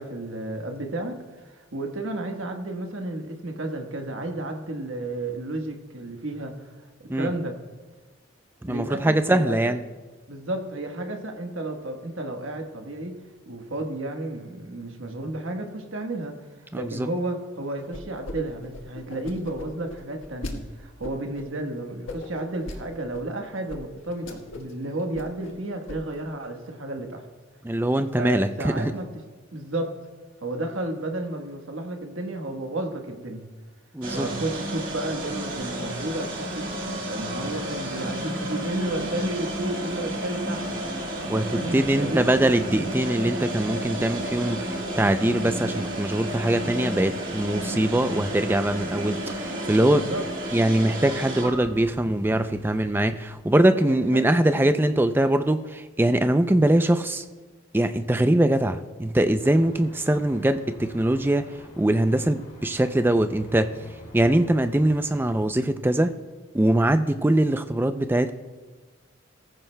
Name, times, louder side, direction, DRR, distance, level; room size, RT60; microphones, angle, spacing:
voice 1, 0.0-6.7 7.0-7.6 8.6-9.7 10.3-13.2 13.4-16.4 16.7-27.3 28.2-29.1 29.5-30.0 30.4-33.5 34.1-36.7 37.1-40.7 41.5-42.2 49.8-50.2 53.7-54.7, right 1 dB, 75° right, 3 dB, 1.3 m, -32 dB
voice 2, 8.6-9.8 16.7-17.1 27.6-28.9 33.9-34.3 41.3-50.1 50.5-57.2 57.7-61.5 61.8-63.7 64.1-66.1 66.5-68.3, right 1 dB, 10° right, 9 dB, 0.4 m, -22 dB
sound 1, 17.9-18.4 18.6-20.5 21.0-21.4 22.1-22.8 23.1-23.2 23.7-23.8 24.1-24.7 25.0-25.5 25.9-26.2, left 2 dB, 80° left, 1.5 m, -37 dB
sound 2, 34.0-53.1, right 1 dB, 40° right, 2.1 m, -32 dB
sound 3, 59.4-65.5, left 1 dB, 40° left, 2.3 m, -47 dB
18.5 x 14.5 x 2.2 m, 1.3 s
head